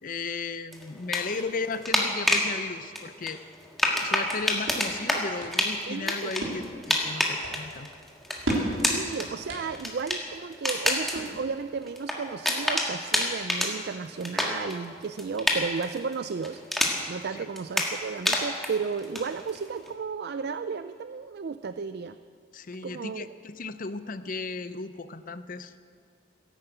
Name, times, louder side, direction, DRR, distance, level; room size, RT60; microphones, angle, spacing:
voice 1, 0.0-3.4 4.0-7.9 17.3-17.5 22.5-25.7, left 4 dB, 40° left, 12 dB, 0.6 m, -35 dB
sound 1, 0.7-2.5 3.0-17.2 17.6-19.9, left 1 dB, ahead, 1.7 m, -29 dB
sound 2, 4.2-11.7, right 1 dB, 80° right, 3.8 m, -37 dB
voice 2, 5.9-6.3 8.8-16.6 17.1-22.2 22.8-23.3, right 5 dB, 50° right, 11 dB, 0.4 m, -33 dB
14.5 x 11.0 x 8.1 m, 2.2 s
head